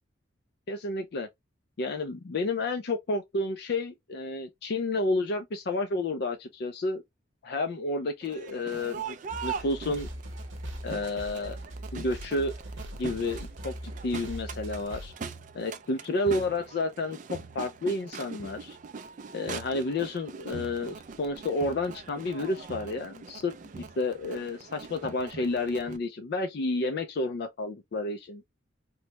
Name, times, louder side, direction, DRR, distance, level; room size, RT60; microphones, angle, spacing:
voice 1, 0.7-1.3 1.8-7.0 7.4-9.2 9.4-10.1 10.8-11.6 11.9-12.5 13.0-15.1 15.5-18.8 19.3-28.4, left 2 dB, 55° left, 0.4 m, -31 dB
Crowd, 8.2-26.0, right 5 dB, 40° right, 0.3 m, -42 dB
sound 1, 9.3-15.1, right 1 dB, 75° right, 0.9 m, -40 dB
3.0 x 2.1 x 2.8 m
head